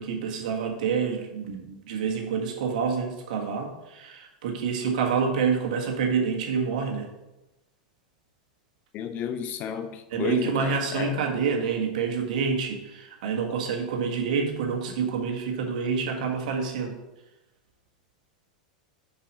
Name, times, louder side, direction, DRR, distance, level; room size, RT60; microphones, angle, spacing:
voice 1, 0.0-7.1 10.1-16.9, right 6 dB, 70° right, 1.6 m, -27 dB
voice 2, 8.9-11.2, left 8 dB, 40° left, 0.8 m, -32 dB
5.6 x 4.9 x 6.5 m
hypercardioid pair, 110°, 4 cm